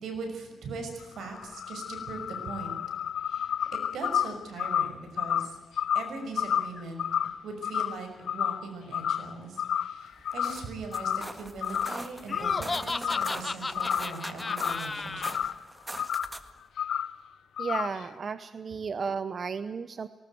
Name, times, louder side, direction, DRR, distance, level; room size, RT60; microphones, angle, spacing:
voice 1, 0.0-2.8 3.2-3.5 3.9-5.6 5.9-7.1 7.4-15.4, right 4 dB, 90° right, 5 dB, 5.9 m, -40 dB
sound 1, 1.0-8.7 8.9-9.3 9.6-10.7 10.9-11.3 11.6-12.0 12.3-13.4 13.7-15.6 16.0-16.3 16.8-17.1 17.6-18.0, left 9 dB, 85° left, 0.7 m, -31 dB
sound 2, 10.2-16.6, right 1 dB, 15° right, 1.7 m, -42 dB
Laughter, 12.3-15.3, left 3 dB, 30° left, 0.6 m, -34 dB
voice 2, 17.6-20.1, right 5 dB, 50° right, 13 dB, 0.8 m, -33 dB
19.5 x 19.0 x 9.3 m, 1.3 s
cardioid pair, 95°, 0 cm